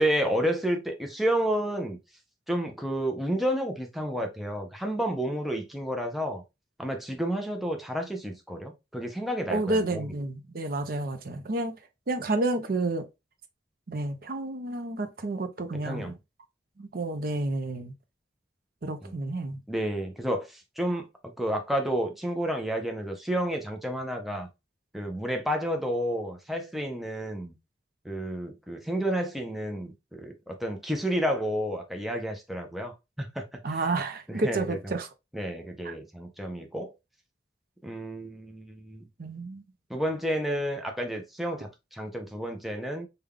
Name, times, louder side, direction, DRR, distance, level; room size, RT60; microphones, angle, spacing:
voice 1, 0.0-2.0 2.5-6.4 6.8-10.0 15.8-16.2 19.0-19.1 19.7-21.1 21.4-24.5 24.9-27.6 28.0-33.9 34.3-34.8 35.3-36.9 37.8-39.1 39.9-43.1, equal, ahead, 0.5 m, -30 dB
voice 2, 9.5-11.7 12.1-13.1 13.9-16.1 16.8-17.9 18.8-19.6 33.6-35.1 35.8-35.9 39.2-39.6, right 2 dB, 55° right, 0.5 m, -30 dB
3.4 x 2.2 x 3.5 m
head